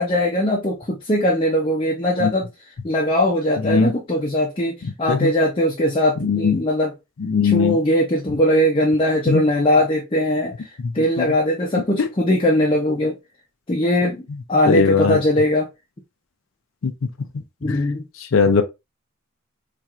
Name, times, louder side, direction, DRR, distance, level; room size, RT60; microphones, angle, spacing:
voice 1, 0.0-2.5 2.8-6.9 7.4-10.7 10.9-13.2 13.7-15.7 17.6-18.0, left 1 dB, 25° left, 0.6 m, -20 dB
voice 2, 6.2-6.6 7.2-7.8 9.3-9.4 10.8-10.9 14.7-15.2 16.8-16.9 17.7-17.8 18.3-18.6, left 5 dB, 75° left, 0.5 m, -18 dB
4.3 x 2.5 x 2.4 m
head